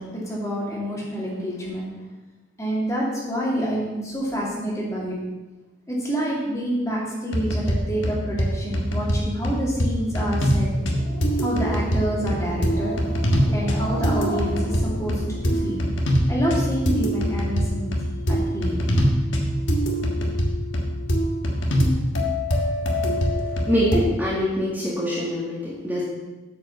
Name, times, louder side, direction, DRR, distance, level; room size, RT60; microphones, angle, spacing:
voice 1, 0.0-2.0 2.6-5.2 5.9-10.7 11.4-12.9 13.5-15.8 16.3-17.9 18.3-18.8, equal, 15° left, -5 dB, 2.5 m, -27 dB
sound 1, 7.3-7.7 8.0-8.4 8.7-9.2 9.4-9.9 10.1-10.6 10.9-24.0, equal, 70° left, 1.7 m, -23 dB
Growling, 10.5-15.9, equal, 55° left, 2.8 m, -36 dB
voice 2, 23.7-26.0, equal, 10° right, -8 dB, 1.8 m, -24 dB
8.8 x 5.6 x 7.0 m, 1.1 s
head